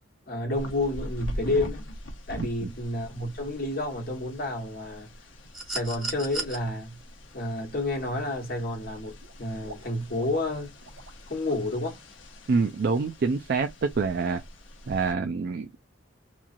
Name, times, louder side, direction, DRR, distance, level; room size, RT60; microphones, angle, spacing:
voice 1, 0.3-1.9 2.3-5.1 5.7-7.0 7.3-10.7 11.3-12.0, left 2 dB, 50° left, 1.3 m, -30 dB
sound 1, 0.5-15.1, equal, 70° left, 0.8 m, -43 dB
voice 2, 2.4-2.7 12.5-14.4 14.9-15.8, right 4 dB, 55° right, 0.4 m, -26 dB
sound 2, 5.5-6.6 8.1-8.2, right 2 dB, ahead, 0.9 m, -34 dB
Water / Liquid, 7.0-7.3 7.7-8.4 8.7-11.2 11.5-11.7 12.1-12.2, right 3 dB, 90° right, 0.7 m, -48 dB
3.0 x 2.4 x 2.5 m
head